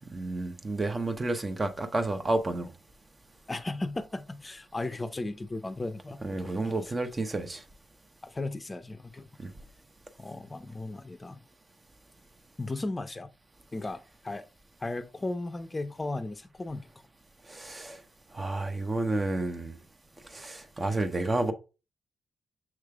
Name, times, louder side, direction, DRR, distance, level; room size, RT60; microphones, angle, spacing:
voice 1, 0.1-2.7 6.2-7.6 17.5-18.0 18.3-19.8 20.3-21.5, right 2 dB, 30° right, 0.7 m, -30 dB
voice 2, 3.5-6.9 8.2-9.3 10.2-11.4 12.6-13.3 13.7-14.4 14.8-16.9, left 2 dB, 30° left, 0.5 m, -36 dB
5.8 x 3.2 x 2.3 m
supercardioid pair, 50°, 0 cm